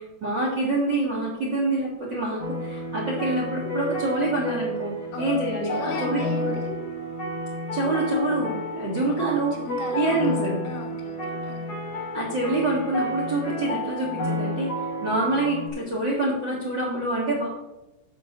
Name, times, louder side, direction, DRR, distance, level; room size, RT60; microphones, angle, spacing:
voice 1, 0.0-6.5 7.7-9.6 9.9-10.5 12.1-14.7 15.0-17.5, right 2 dB, 45° right, -4 dB, 1.5 m, -26 dB
sound 1, 2.4-15.7, equal, 30° left, 2.3 m, -31 dB
voice 2, 5.1-6.6 9.1-9.2 9.5-10.4 10.7-11.7, left 5 dB, 80° left, 3 dB, 3.5 m, -37 dB
7.3 x 6.3 x 6.3 m, 1.0 s
omnidirectional pair, 4.6 m